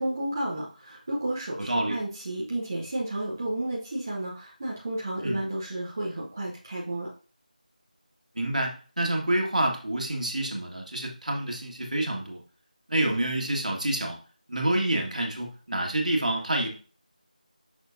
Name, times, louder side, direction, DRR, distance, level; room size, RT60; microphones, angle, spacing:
voice 1, 0.0-7.1, right 1 dB, 20° right, -6 dB, 0.9 m, -32 dB
voice 2, 1.6-2.0 5.2-5.4 8.4-12.4 12.9-14.2 14.5-16.7, right 1 dB, 60° right, 1 dB, 1.9 m, -28 dB
7.5 x 6.2 x 2.7 m, 0.38 s
figure-of-eight pair, 175°, 5 cm